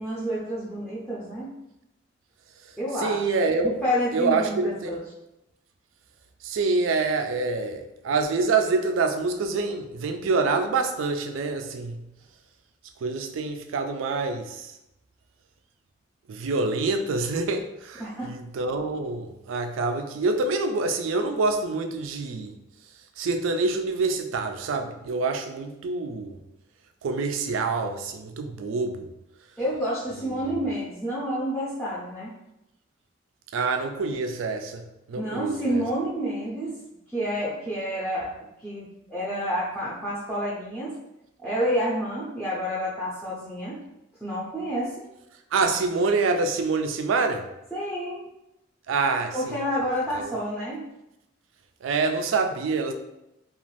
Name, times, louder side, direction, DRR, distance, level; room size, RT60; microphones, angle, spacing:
voice 1, 0.0-1.6 2.8-3.3 3.6-5.0 18.0-18.3 29.6-32.3 35.2-36.8 37.1-41.0 41.4-43.8 44.2-44.9 47.7-48.2 49.3-50.9, equal, ahead, -9 dB, 0.5 m, -29 dB
voice 2, 3.0-3.8 4.1-5.0 6.4-12.0 13.0-14.7 16.3-22.5 23.2-26.4 27.0-29.1 30.2-30.6 33.5-35.8 45.5-47.4 48.9-49.5 50.1-50.3 51.8-52.9, right 3 dB, 80° right, 6 dB, 0.4 m, -26 dB
2.5 x 2.3 x 3.1 m, 0.88 s
head